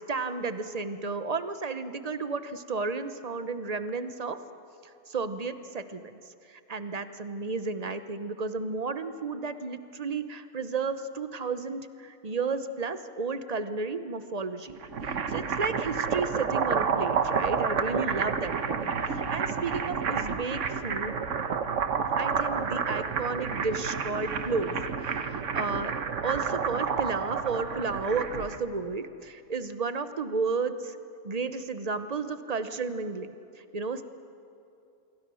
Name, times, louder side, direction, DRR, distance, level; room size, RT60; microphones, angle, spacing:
voice 1, 0.0-4.4 5.1-6.2 6.5-14.8 15.1-21.2 22.2-25.9 26.2-31.0 31.2-33.3 33.7-34.0, right 4 dB, 35° right, 10 dB, 0.9 m, -32 dB
sound 1, 14.7-28.6, right 6 dB, 60° right, 1.4 m, -30 dB
27.0 x 23.0 x 6.3 m, 2.7 s
omnidirectional pair, 1.5 m